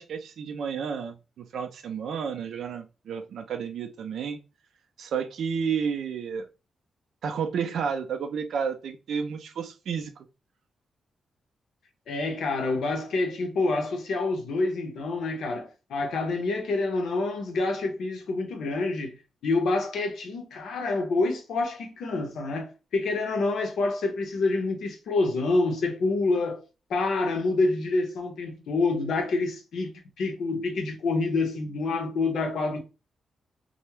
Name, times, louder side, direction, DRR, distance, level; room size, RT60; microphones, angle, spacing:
voice 1, 0.0-4.4 5.0-6.5 7.2-10.3, right 6 dB, 75° right, 0.4 m, -31 dB
voice 2, 12.1-19.2 19.4-26.6 26.9-29.9 30.2-32.8, left 3 dB, 75° left, 0.6 m, -27 dB
2.2 x 2.0 x 2.9 m
cardioid pair, 115°, 0 cm